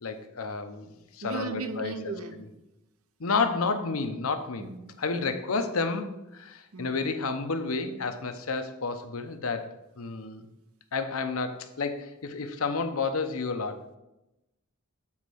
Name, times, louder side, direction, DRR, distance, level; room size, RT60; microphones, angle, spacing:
voice 1, 0.0-1.9 3.2-4.7 5.0-10.5 10.9-13.8, left 4 dB, 80° left, 7 dB, 0.8 m, -31 dB
voice 2, 1.2-2.4 4.6-5.4 6.7-7.1, right 3 dB, 90° right, 9 dB, 0.8 m, -37 dB
7.3 x 4.2 x 6.3 m, 0.93 s
head